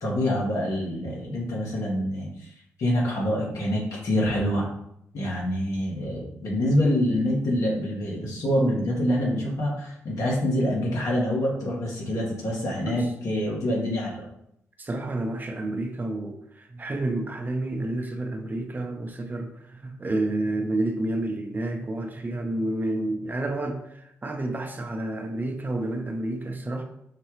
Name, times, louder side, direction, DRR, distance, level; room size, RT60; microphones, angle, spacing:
voice 1, 0.0-2.5 2.8-4.7 5.1-14.2, equal, 70° left, -3 dB, 1.4 m, -26 dB
voice 2, 14.8-26.8, right 2 dB, 35° right, 4 dB, 0.7 m, -30 dB
5.7 x 2.3 x 3.1 m, 0.76 s
supercardioid pair, 55°, 6 cm